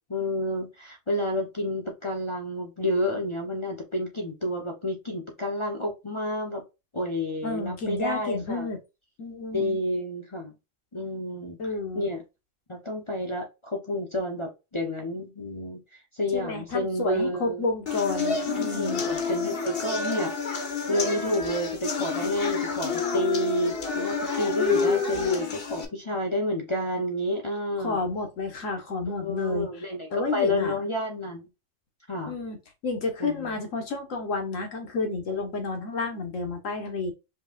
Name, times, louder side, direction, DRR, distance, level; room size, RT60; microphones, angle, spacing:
voice 1, 0.1-6.6 6.9-8.7 9.5-10.5 10.9-11.6 12.0-12.2 12.7-15.8 16.2-17.7 18.4-20.3 20.9-28.0 29.1-31.5 32.1-32.3 33.2-33.6, left 1 dB, 25° left, 0.8 m, -30 dB
voice 2, 7.4-8.8 9.2-9.8 11.6-12.1 16.3-19.0 27.8-29.7 30.1-30.8 32.3-32.6 32.8-37.1, left 3 dB, 80° left, 1.6 m, -30 dB
sound 1, 17.9-25.8, left 5 dB, 50° left, 1.1 m, -29 dB
5.3 x 3.0 x 2.4 m
omnidirectional pair, 1.3 m